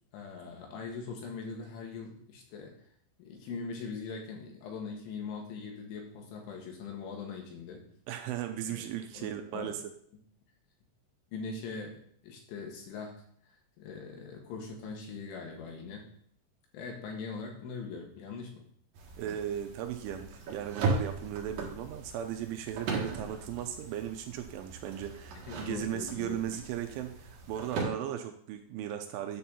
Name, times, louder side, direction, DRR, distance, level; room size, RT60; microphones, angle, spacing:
voice 1, 0.1-2.9 3.2-7.8 8.6-8.8 9.1-9.7 11.3-16.0 16.7-18.7 25.4-26.6, left 5 dB, 70° left, 1 dB, 4.0 m, -41 dB
voice 2, 8.1-9.8 19.2-29.4, right 10 dB, 85° right, 6 dB, 2.9 m, -37 dB
sound 1, 18.9-27.8, right 4 dB, 60° right, 2.6 m, -38 dB
10.0 x 4.5 x 7.0 m, 0.63 s
omnidirectional pair, 5.9 m